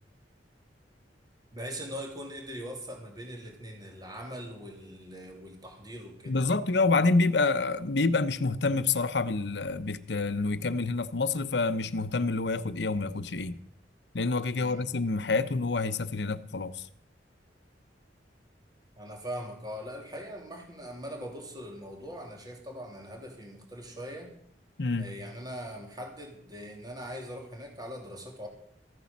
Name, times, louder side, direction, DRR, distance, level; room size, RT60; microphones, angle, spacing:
voice 1, 1.5-6.6 14.5-14.9 19.0-24.3 25.0-28.5, equal, 25° right, 3.0 m, -41 dB
voice 2, 6.3-13.6 14.1-16.9 24.8-25.1, left 3 dB, 70° left, 0.9 m, -27 dB
14.5 x 9.4 x 7.3 m
head